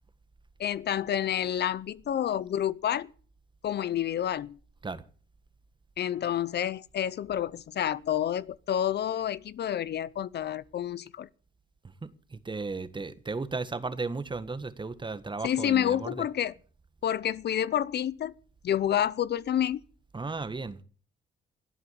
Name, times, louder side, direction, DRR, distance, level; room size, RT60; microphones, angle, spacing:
voice 1, 0.6-3.1 3.6-4.6 6.0-11.3 15.4-16.5 17.0-18.3 18.6-19.8, left 10 dB, 55° left, 0.7 m, -29 dB
voice 2, 12.0-16.3 20.1-20.8, right 3 dB, 25° right, 1.5 m, -35 dB
16.5 x 8.9 x 8.4 m
cardioid pair, 90°, 20 cm